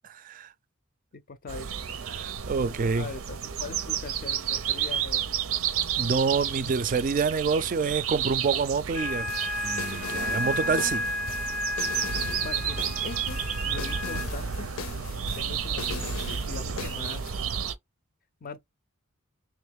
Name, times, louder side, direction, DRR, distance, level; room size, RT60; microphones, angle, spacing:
voice 1, 0.1-0.5 2.1-3.1 6.0-9.3 9.6-11.0, right 5 dB, 40° right, 0.3 m, -27 dB
voice 2, 1.1-1.7 2.9-5.3 12.4-14.7 15.3-16.1 16.4-17.5 18.4-18.6, left 4 dB, 45° left, 0.4 m, -41 dB
sound 1, 1.5-17.7, right 8 dB, 90° right, 0.6 m, -32 dB
sound 2, 8.9-14.2, left 1 dB, ahead, 0.6 m, -32 dB
sound 3, 9.3-17.3, left 6 dB, 85° left, 0.6 m, -40 dB
3.5 x 3.0 x 3.5 m
head